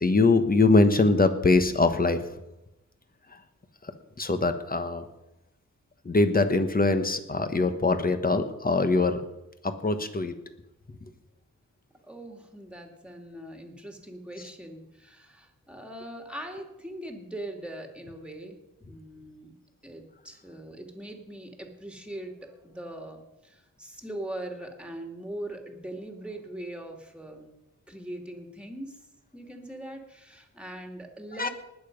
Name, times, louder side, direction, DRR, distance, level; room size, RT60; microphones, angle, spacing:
voice 1, 0.0-2.2 3.8-3.9 4.2-5.1 6.0-9.2 9.6-10.3 31.4-31.5, left 3 dB, 25° left, 9 dB, 1.3 m, -23 dB
voice 2, 12.0-18.6 18.8-19.5 19.8-27.5 27.9-29.0 29.3-31.5, right 1 dB, 5° right, 3 dB, 2.4 m, -41 dB
19.5 x 7.1 x 5.3 m, 0.91 s
wide cardioid pair, 90°, 34 cm